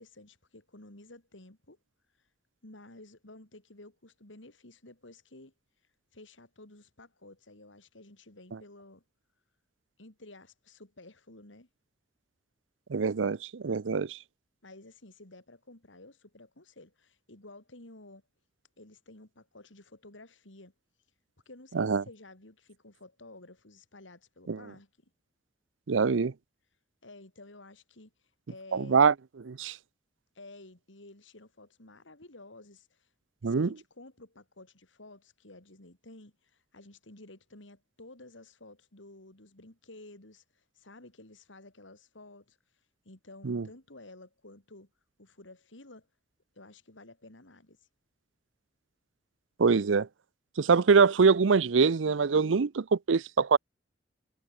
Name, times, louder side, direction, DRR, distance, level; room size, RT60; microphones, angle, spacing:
voice 1, 0.0-1.8 2.1-2.3 2.6-9.0 10.0-11.7 14.6-18.2 18.8-20.7 21.0-21.1 21.5-25.1 27.0-29.0 30.3-33.1 33.4-44.9 45.2-46.1 46.5-47.9, left 2 dB, 85° left, 3.6 m, -52 dB
voice 2, 12.9-14.2 21.7-22.0 24.5-24.6 25.9-26.3 28.7-29.1 29.5-29.8 33.4-33.7 43.4-43.6 49.6-50.1 50.6-53.6, right 5 dB, 90° right, 0.6 m, -24 dB
head